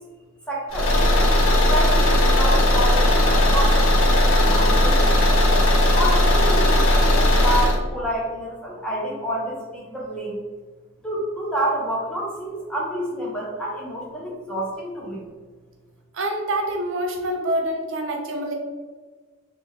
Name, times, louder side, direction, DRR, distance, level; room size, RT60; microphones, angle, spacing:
voice 1, 0.5-1.0 1.7-5.5 5.9-10.4 11.0-15.2, right 1 dB, 5° left, -5 dB, 0.7 m, -29 dB
Car / Engine, 0.7-7.8, left 1 dB, 80° left, 0.6 m, -17 dB
voice 2, 16.1-18.5, right 1 dB, 65° right, 2 dB, 0.6 m, -26 dB
2.8 x 2.3 x 3.1 m, 1.4 s
head